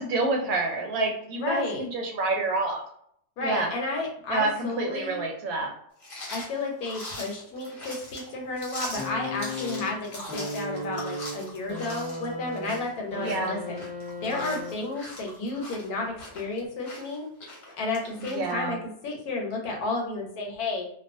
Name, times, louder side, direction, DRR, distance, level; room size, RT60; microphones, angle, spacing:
voice 1, 0.0-2.8 3.4-3.7 4.3-5.7 13.2-13.6 18.2-18.8, right 2 dB, 70° right, 1 dB, 0.9 m, -28 dB
voice 2, 1.4-1.9 3.4-5.2 6.3-13.8 14.2-17.3 17.8-20.8, left 2 dB, 75° left, 1 dB, 1.1 m, -32 dB
sound 1, 6.0-18.5, left 1 dB, 50° left, 0.9 m, -42 dB
sound 2, 9.0-15.1 16.2-16.3, left 1 dB, 10° right, 0.7 m, -36 dB
2.4 x 2.3 x 2.5 m, 0.68 s
omnidirectional pair, 1.7 m